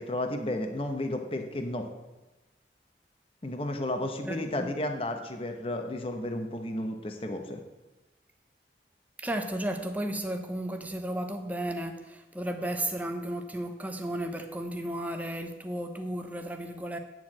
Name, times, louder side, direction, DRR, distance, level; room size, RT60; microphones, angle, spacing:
voice 1, 0.0-1.9 3.4-7.6, left 1 dB, 30° left, 5 dB, 0.8 m, -32 dB
voice 2, 4.2-4.7 9.2-17.0, right 1 dB, 10° right, 6 dB, 0.8 m, -34 dB
9.6 x 4.6 x 7.5 m, 1.1 s
head